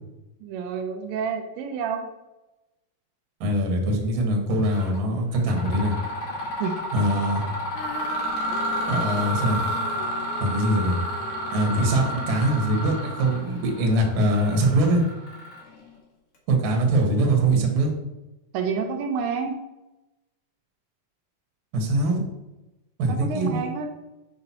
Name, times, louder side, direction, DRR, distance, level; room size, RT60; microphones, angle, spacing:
voice 1, 0.4-2.1 6.6-6.8 17.0-17.1 18.5-19.6 23.1-23.9, right 6 dB, 80° right, 4 dB, 2.7 m, -29 dB
voice 2, 3.4-5.9 6.9-7.4 8.9-9.7 10.4-11.0 11.5-15.0 16.5-17.9 21.7-22.2 23.0-23.7, right 1 dB, 65° right, 1 dB, 2.3 m, -22 dB
Mechanisms, 4.6-5.0 5.3-15.9, right 1 dB, 50° left, 1.7 m, -31 dB
Female singing, 7.7-14.0 14.7-14.8, left 9 dB, 85° left, 3.2 m, -41 dB
8.9 x 5.1 x 4.2 m, 1.0 s
omnidirectional pair, 5.8 m